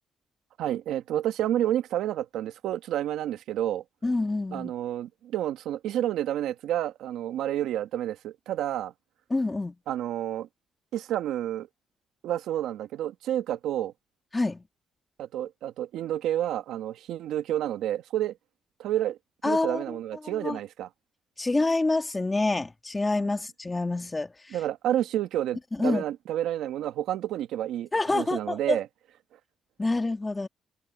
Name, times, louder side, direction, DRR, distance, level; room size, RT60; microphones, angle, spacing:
voice 1, 0.6-3.8 4.5-8.9 9.9-10.5 10.9-11.7 12.2-13.9 15.2-18.3 18.8-19.2 19.4-20.9 24.5-28.9, right 12 dB, 85° right, 1.6 m, -30 dB
voice 2, 4.0-4.7 9.3-9.7 14.3-14.6 19.4-19.8 20.2-20.6 21.4-24.6 25.8-26.0 27.9-28.8 29.8-30.5, left 2 dB, 20° left, 2.2 m, -27 dB
cardioid pair, 90°, 0 cm